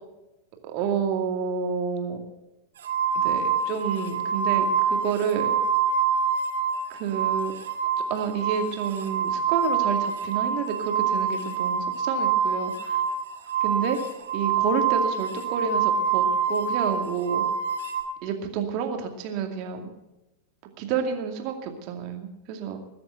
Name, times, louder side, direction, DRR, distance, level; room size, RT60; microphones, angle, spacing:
voice 1, 0.6-2.2 3.1-5.5 6.9-7.5 8.1-13.0 13.6-14.0 14.3-17.4 18.2-19.9 20.8-22.8, right 7 dB, 45° right, 4 dB, 2.3 m, -29 dB
sound 1, 2.8-6.8 7.1-18.0, right 6 dB, 60° right, 2.2 m, -26 dB
20.5 x 7.7 x 7.9 m, 0.97 s
figure-of-eight pair, 90°, 0 cm